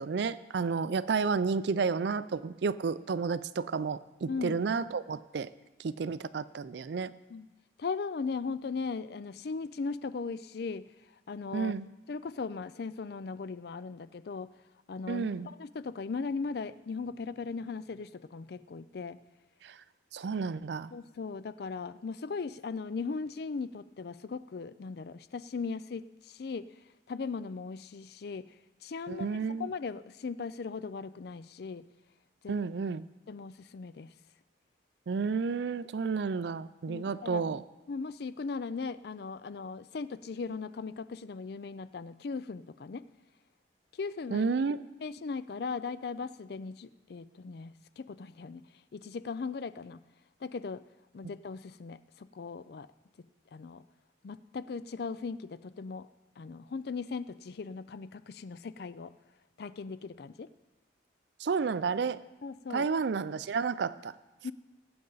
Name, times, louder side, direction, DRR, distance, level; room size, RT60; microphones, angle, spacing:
voice 1, 0.0-5.5 5.8-7.1 11.5-11.9 15.1-15.5 19.6-19.8 20.1-20.9 29.1-29.7 32.5-33.0 35.1-37.6 44.3-44.8 61.4-62.2 62.7-64.1, right 5 dB, 65° right, 16 dB, 0.4 m, -31 dB
voice 2, 4.3-4.6 7.3-7.5 7.8-10.8 11.3-11.7 12.1-14.5 14.9-19.2 20.9-26.7 27.1-28.5 28.8-31.8 32.4-32.6 33.3-34.1 36.9-37.4 37.9-43.0 44.0-44.5 45.0-48.6 48.9-50.0 50.4-50.8 51.1-52.9 53.5-53.8 54.2-56.1 56.4-59.1 59.6-60.5 62.4-62.9 64.4-64.5, left 4 dB, 55° left, 15 dB, 0.4 m, -38 dB
18.5 x 8.7 x 3.9 m, 1.1 s
head